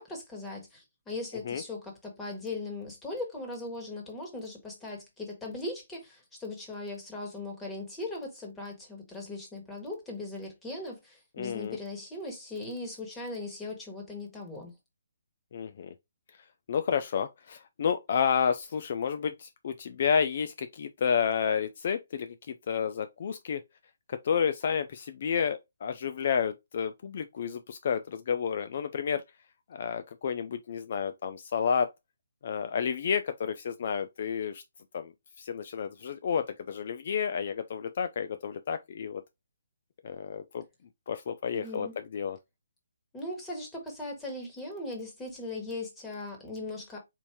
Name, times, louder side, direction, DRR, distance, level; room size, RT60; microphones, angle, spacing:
voice 1, 0.0-14.7 41.5-41.9 43.1-47.0, left 2 dB, 10° left, 1.5 m, -39 dB
voice 2, 11.4-11.8 15.5-15.9 16.7-23.6 24.1-29.2 29.7-31.9 32.4-34.6 34.9-35.1 35.4-39.2 40.0-40.6 41.1-42.4, left 7 dB, 50° left, 0.4 m, -30 dB
4.5 x 2.6 x 3.5 m
hypercardioid pair, 155°, 0 cm